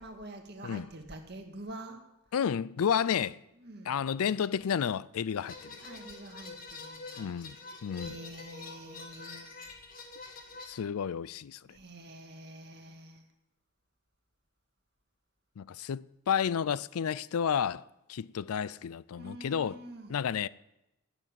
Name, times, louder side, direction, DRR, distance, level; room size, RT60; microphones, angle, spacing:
voice 1, 0.0-2.0 3.6-4.0 5.8-7.3 8.0-9.7 11.7-13.2 19.2-20.2, right 1 dB, 50° right, 1.9 m, -47 dB
voice 2, 2.3-3.4 3.9-5.8 7.2-7.6 7.8-8.1 10.7-11.6 15.6-19.8 20.1-20.5, left 7 dB, 75° left, 0.4 m, -31 dB
sound 1, 5.5-10.7, left 3 dB, 40° left, 2.0 m, -46 dB
15.5 x 7.1 x 9.1 m
head